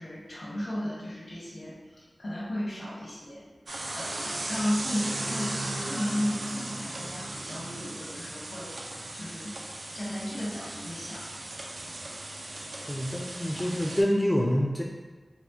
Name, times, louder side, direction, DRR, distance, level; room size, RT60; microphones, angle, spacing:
voice 1, 0.0-3.4 3.9-8.8 9.1-9.5 9.9-11.3, left 1 dB, 75° left, -6 dB, 1.0 m, -34 dB
sound 1, 3.7-14.0, right 1 dB, 85° right, 0.4 m, -37 dB
voice 2, 12.9-14.8, equal, 15° left, -2 dB, 0.3 m, -26 dB
4.1 x 2.1 x 2.6 m, 1.3 s
wide cardioid pair, 75°, 0 cm